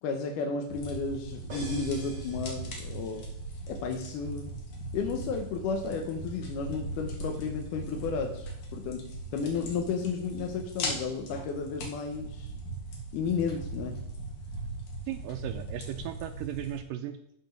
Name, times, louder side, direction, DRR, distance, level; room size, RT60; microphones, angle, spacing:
voice 1, 0.0-3.3 3.7-4.5 4.9-8.5 8.7-9.0 9.3-12.5 13.1-14.0, left 5 dB, 75° left, 2 dB, 2.1 m, -33 dB
sound 1, 0.7-16.8, right 1 dB, 55° left, 2.6 m, -39 dB
sound 2, 1.5-3.3, right 1 dB, 30° right, 3.7 m, -47 dB
voice 2, 15.1-17.4, right 11 dB, 85° right, 8 dB, 2.0 m, -37 dB
12.5 x 4.4 x 5.2 m, 0.74 s
omnidirectional pair, 4.3 m